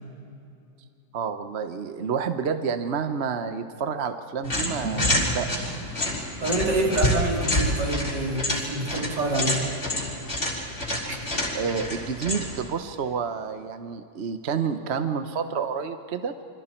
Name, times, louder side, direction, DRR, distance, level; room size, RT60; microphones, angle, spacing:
voice 1, 1.1-5.7 11.5-16.3, right 6 dB, 45° right, 8 dB, 0.9 m, -29 dB
sound 1, 4.4-12.7, left 1 dB, 40° left, 4.2 m, -28 dB
sound 2, 4.7-5.2, right 2 dB, 65° left, 4.2 m, -35 dB
voice 2, 6.4-9.7 11.1-11.2, right 2 dB, 70° right, -2 dB, 4.0 m, -26 dB
28.5 x 25.5 x 4.5 m, 2.5 s
omnidirectional pair, 1.9 m